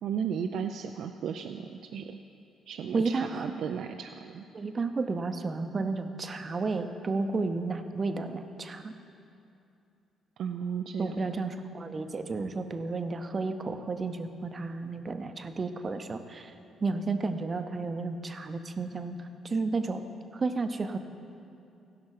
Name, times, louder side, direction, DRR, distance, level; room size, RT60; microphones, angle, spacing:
voice 1, 0.0-2.2 2.7-4.4 10.4-11.2, right 7 dB, 70° right, 6 dB, 0.4 m, -35 dB
voice 2, 2.9-3.5 4.5-8.9 11.0-16.5 16.8-20.0 20.3-21.0, right 3 dB, 35° right, 8 dB, 0.7 m, -32 dB
16.0 x 5.9 x 4.9 m, 2.6 s
cardioid pair, 90°, 0 cm